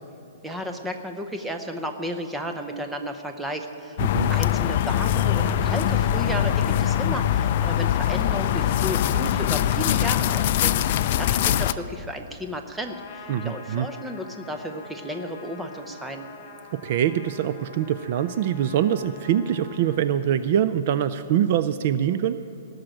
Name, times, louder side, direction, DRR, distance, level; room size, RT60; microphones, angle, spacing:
voice 1, 0.4-16.2, equal, 5° right, 4 dB, 0.6 m, -33 dB
sound 1, 4.0-11.7, left 11 dB, 40° left, 0.4 m, -22 dB
voice 2, 4.0-4.3 13.3-13.9 16.7-22.4, right 10 dB, 40° right, 12 dB, 0.4 m, -24 dB
Trumpet, 12.8-20.0, left 4 dB, 20° left, 1.3 m, -45 dB
18.0 x 6.5 x 8.8 m, 2.9 s
hypercardioid pair, 170°, 0 cm